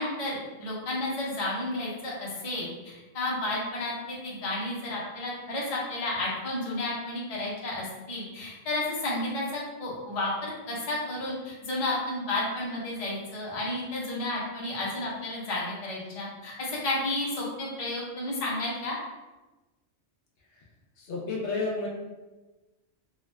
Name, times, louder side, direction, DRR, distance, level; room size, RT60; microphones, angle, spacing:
voice 1, 0.0-19.0, left 2 dB, 35° left, -5 dB, 0.7 m, -32 dB
voice 2, 21.0-21.9, left 3 dB, 70° left, -2 dB, 0.9 m, -31 dB
2.8 x 2.4 x 3.2 m, 1.1 s
omnidirectional pair, 1.2 m